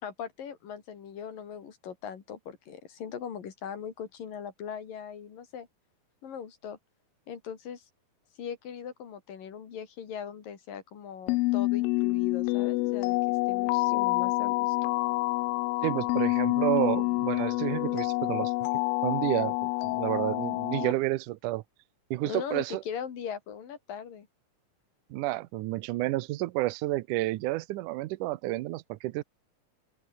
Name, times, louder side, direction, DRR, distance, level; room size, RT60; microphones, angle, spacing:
voice 1, 0.0-5.7 6.2-6.8 7.3-7.9 8.4-13.2 13.5-14.9 22.2-24.3, left 7 dB, 70° left, 4.6 m, -40 dB
sound 1, 11.3-20.9, left 22 dB, 90° left, 2.4 m, -27 dB
voice 2, 15.8-18.5 19.0-21.6 22.1-22.8 25.1-29.2, right 17 dB, 75° right, 2.0 m, -30 dB
open air
omnidirectional pair, 4.1 m